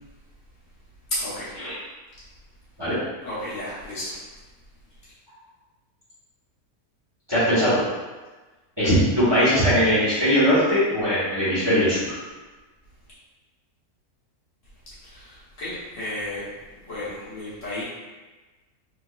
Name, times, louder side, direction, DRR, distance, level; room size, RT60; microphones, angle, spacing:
voice 1, 1.1-1.5 3.2-4.2 15.0-15.3 15.6-16.5 16.9-17.8, left 1 dB, 55° left, -11 dB, 1.5 m, -32 dB
voice 2, 7.3-7.8 8.8-12.0, equal, 20° right, -12 dB, 1.1 m, -20 dB
3.4 x 2.9 x 2.4 m, 1.2 s
omnidirectional pair, 1.6 m